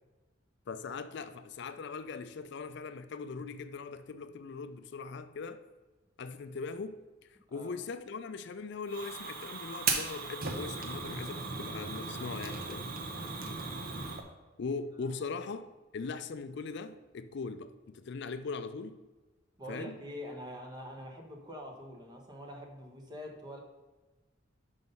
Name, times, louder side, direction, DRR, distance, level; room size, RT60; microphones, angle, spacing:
voice 1, 0.7-5.6 6.2-7.0 7.3-12.9 14.6-19.0 19.7-20.0, left 4 dB, 60° left, 0.4 m, -40 dB
Fire, 8.9-14.2, right 4 dB, 50° right, 0.9 m, -37 dB
voice 2, 15.1-15.4 19.6-23.6, equal, 20° right, 1.2 m, -45 dB
6.3 x 5.3 x 5.4 m
head